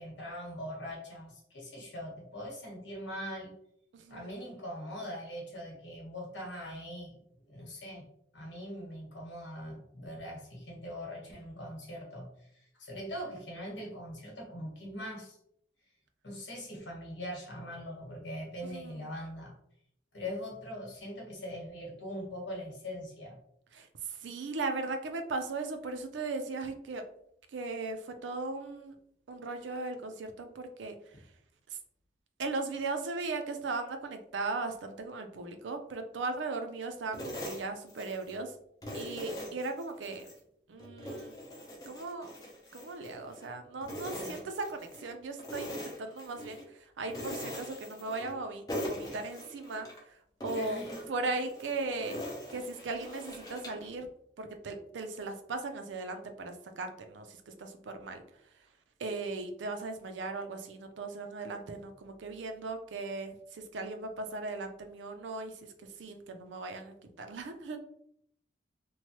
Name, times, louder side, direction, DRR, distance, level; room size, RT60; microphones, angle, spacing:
voice 1, 0.0-3.5 4.1-7.2 7.5-8.1 8.3-15.4 16.2-19.5 20.1-23.4 31.1-31.2 44.1-44.4 50.6-51.1, equal, 85° left, -1 dB, 1.2 m, -42 dB
voice 2, 3.9-4.4 18.6-19.1 23.7-27.0 27.5-28.9 29.3-31.0 32.4-38.5 38.9-40.3 40.7-41.4 41.9-42.3 42.7-50.2 50.4-50.8 51.1-52.2 52.5-54.1 54.4-58.2 59.0-65.7 66.0-67.8, right 3 dB, 90° right, 7 dB, 0.4 m, -38 dB
sound 1, 37.1-38.4 38.8-40.4 40.8-43.5 43.8-45.1 45.4-46.6 47.1-48.4 48.7-50.0 50.4-53.9, equal, 20° left, 0.6 m, -42 dB
3.1 x 2.2 x 2.9 m, 0.70 s
head